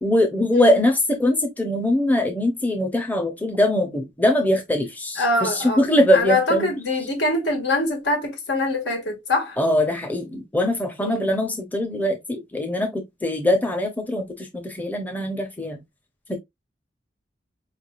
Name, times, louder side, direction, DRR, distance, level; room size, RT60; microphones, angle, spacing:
voice 1, 0.0-6.7 9.6-15.8 16.3-16.4, left 1 dB, 10° left, 0.7 m, -22 dB
voice 2, 5.2-5.9 6.1-9.6 11.0-11.3, left 2 dB, 75° left, 1.8 m, -24 dB
4.9 x 3.3 x 2.4 m
head